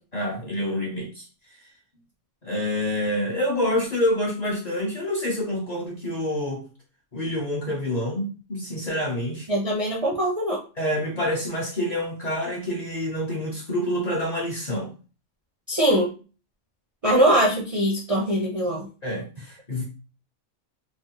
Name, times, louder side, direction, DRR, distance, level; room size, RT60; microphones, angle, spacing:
voice 1, 0.1-1.3 2.4-6.6 7.1-9.5 10.8-14.9 19.0-19.8, left 1 dB, 45° left, 0.6 m, -27 dB
voice 2, 9.5-10.6 15.7-16.1 17.0-18.9, right 1 dB, 45° right, 0.4 m, -22 dB
3.3 x 2.1 x 2.7 m
omnidirectional pair, 1.3 m